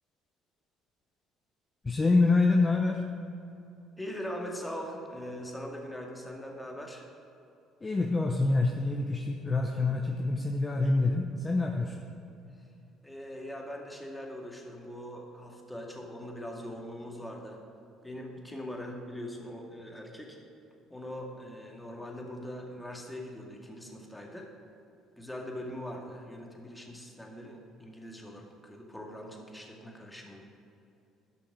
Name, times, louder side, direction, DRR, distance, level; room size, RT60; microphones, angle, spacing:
voice 1, 1.8-3.0 7.8-12.0, left 3 dB, 25° left, 2 dB, 0.9 m, -26 dB
voice 2, 4.0-7.1 11.9-12.0 13.0-17.6 18.0-20.4 20.9-24.5 25.2-30.4, equal, 10° left, 0 dB, 2.1 m, -41 dB
11.5 x 5.8 x 6.1 m, 2.7 s
hypercardioid pair, 65°, 0 cm